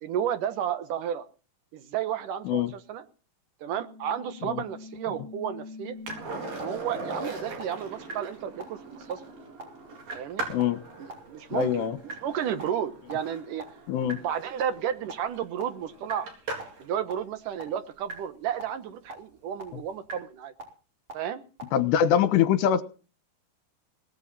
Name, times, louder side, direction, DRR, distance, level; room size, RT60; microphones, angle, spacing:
voice 1, 0.0-1.3 1.7-3.1 3.6-6.0 6.5-9.2 10.1-10.4 11.0-13.7 14.2-16.3 16.8-20.5 21.1-21.4, right 9 dB, 70° right, 11 dB, 2.1 m, -32 dB
sound 1, 3.7-6.1 6.6-6.7 7.1-7.2 7.6-7.7 8.1-8.2 8.6-8.7 9.1-9.2 9.6-9.7 10.1-10.2 10.6-10.7 11.1-11.2 11.6-11.7 12.1-12.2 12.6-12.7 13.1-13.2 13.6-13.7 14.1-14.2 14.6-14.7 15.1-15.2 15.6-15.7 16.1-16.2 16.6-16.7 17.1-17.2 17.6-17.7 18.1-18.2 18.6-18.7 19.1-19.2 19.6-19.7 20.1-20.2 20.6-20.7 21.1-21.2 21.6-21.7, right 1 dB, 30° right, 5.3 m, -40 dB
Skateboard, 6.1-16.9 19.5-19.6, right 2 dB, 55° right, 5.6 m, -40 dB
voice 2, 11.5-12.0 13.9-14.2 21.7-22.8, left 9 dB, 75° left, 12 dB, 3.4 m, -23 dB
19.0 x 15.0 x 4.2 m, 0.36 s
omnidirectional pair, 5.1 m